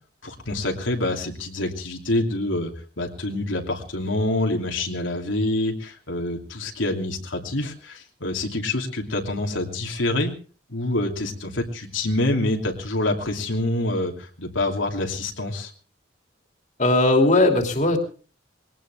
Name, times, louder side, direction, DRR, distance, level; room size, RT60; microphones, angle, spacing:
voice 1, 0.2-2.7 3.0-10.3 10.7-15.7, left 2 dB, 85° left, 2 dB, 2.9 m, -26 dB
voice 2, 16.8-18.0, left 2 dB, 40° left, 4 dB, 2.8 m, -18 dB
21.5 x 18.0 x 3.5 m, 0.39 s
head